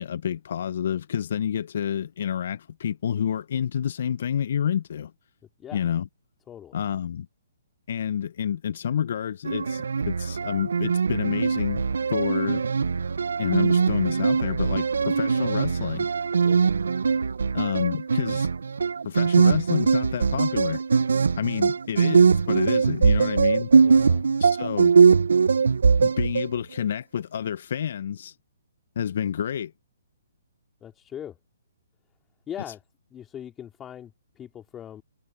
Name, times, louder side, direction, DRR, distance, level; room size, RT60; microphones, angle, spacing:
voice 1, 0.0-5.1 5.7-6.0 6.7-7.3 7.9-11.8 12.1-12.6 13.4-16.1 17.5-18.5 19.0-20.8 21.4-23.7 24.4-24.9 26.0-28.4 29.0-29.7, left 9 dB, 60° left, 0.6 m, -28 dB
voice 2, 6.5-6.8 15.0-15.2 16.4-16.6 23.8-24.2 30.8-31.4 32.5-32.8 33.1-35.0, left 10 dB, 15° left, 2.9 m, -40 dB
sound 1, 9.5-26.6, right 5 dB, 80° right, 0.6 m, -21 dB
hypercardioid pair, 140°, 0 cm